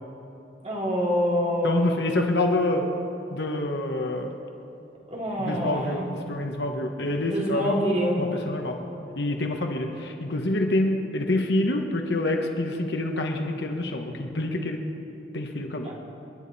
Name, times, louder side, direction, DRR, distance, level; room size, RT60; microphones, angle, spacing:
voice 1, 0.6-2.0 5.1-6.1 7.0-8.2 15.8-15.9, equal, 35° right, -3 dB, 2.8 m, -26 dB
voice 2, 1.6-2.9 3.3-4.3 5.4-7.8 8.2-8.8 9.1-14.8 15.3-15.9, left 1 dB, 65° left, 3 dB, 1.3 m, -27 dB
29.0 x 10.5 x 4.2 m, 2.9 s
head